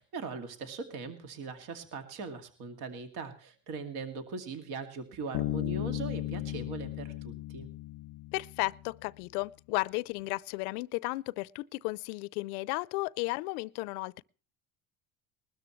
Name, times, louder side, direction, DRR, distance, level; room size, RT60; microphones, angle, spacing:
voice 1, 0.0-7.7, right 4 dB, 60° right, 2.4 m, -40 dB
Bass guitar, 5.3-8.9, left 15 dB, 45° left, 0.6 m, -36 dB
voice 2, 8.3-14.2, left 23 dB, 85° left, 0.6 m, -34 dB
20.5 x 13.0 x 3.1 m
supercardioid pair, 110°, 43 cm